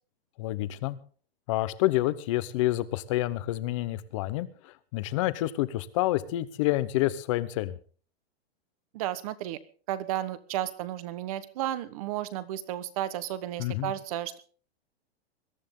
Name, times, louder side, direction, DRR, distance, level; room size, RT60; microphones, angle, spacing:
voice 1, 0.4-1.0 1.5-7.8 13.6-13.9, left 16 dB, 30° left, 15 dB, 0.9 m, -28 dB
voice 2, 8.9-9.6 9.9-14.4, right 13 dB, 35° right, 15 dB, 1.2 m, -33 dB
21.5 x 13.0 x 3.7 m, 0.41 s
supercardioid pair, 175°, 31 cm